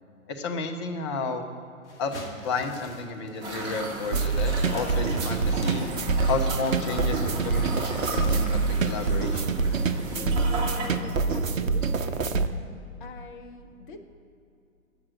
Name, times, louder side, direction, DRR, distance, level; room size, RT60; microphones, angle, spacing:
voice 1, 0.3-1.5 2.0-2.1 2.4-5.9 6.3-9.6, left 3 dB, 20° left, 5 dB, 0.6 m, -32 dB
sound 1, 1.8-9.1, left 1 dB, 55° left, 1.9 m, -46 dB
sound 2, 3.4-10.9, right 2 dB, 10° right, 0.9 m, -36 dB
sound 3, 4.1-12.5, right 4 dB, 70° right, 0.7 m, -26 dB
voice 2, 10.8-12.4 13.0-14.0, left 4 dB, 35° left, 6 dB, 0.9 m, -43 dB
8.6 x 6.4 x 6.2 m, 2.6 s
figure-of-eight pair, 120°, 41 cm